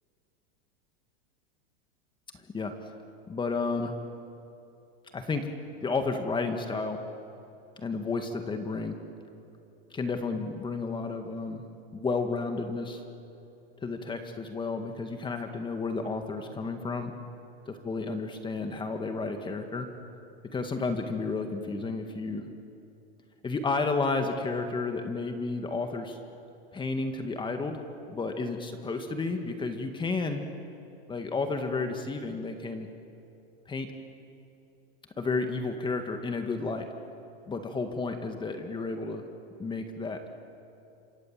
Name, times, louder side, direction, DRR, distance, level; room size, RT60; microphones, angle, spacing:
voice 1, 3.3-3.9 5.1-5.5 5.8-7.0 7.8-9.0 9.9-11.6 11.9-13.0 13.8-17.1 17.8-19.9 20.5-22.4 23.4-26.2 26.7-27.8 28.1-30.4 31.1-32.9 33.7-33.9 35.2-36.9 37.5-39.2 39.6-40.2, left 3 dB, 15° left, 6 dB, 2.0 m, -31 dB
27.0 x 26.0 x 7.6 m, 2.8 s
supercardioid pair, 135°, 31 cm